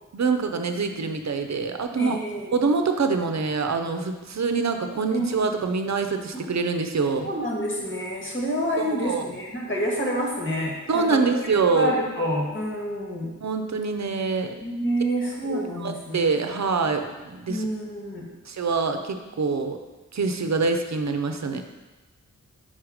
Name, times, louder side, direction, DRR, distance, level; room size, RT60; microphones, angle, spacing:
voice 1, 0.1-2.2 2.5-7.3 8.8-9.2 10.9-11.9 13.4-14.5 15.4-17.6 18.5-19.8 20.1-21.6, right 4 dB, 60° right, 6 dB, 0.6 m, -25 dB
voice 2, 2.0-2.5 5.1-5.4 7.2-11.5 11.7-13.3 14.6-16.2 17.5-18.3, equal, 40° left, -2 dB, 1.6 m, -28 dB
5.6 x 4.8 x 4.9 m, 1.2 s
wide cardioid pair, 75°, 31 cm